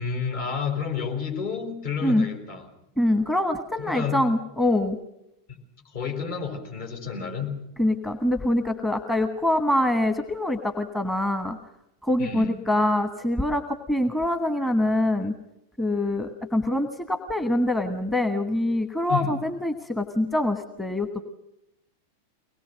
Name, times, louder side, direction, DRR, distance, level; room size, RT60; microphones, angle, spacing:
voice 1, 0.0-2.7 3.8-4.2 5.5-5.6 5.8-7.6 12.2-12.6 19.1-19.3, left 6 dB, 55° left, 4 dB, 4.6 m, -30 dB
voice 2, 3.0-5.0 7.8-11.6 12.0-13.6 13.9-15.3 15.8-21.2, left 1 dB, 5° left, 6 dB, 1.2 m, -24 dB
23.5 x 19.5 x 6.5 m, 0.87 s
figure-of-eight pair, 90°, 0 cm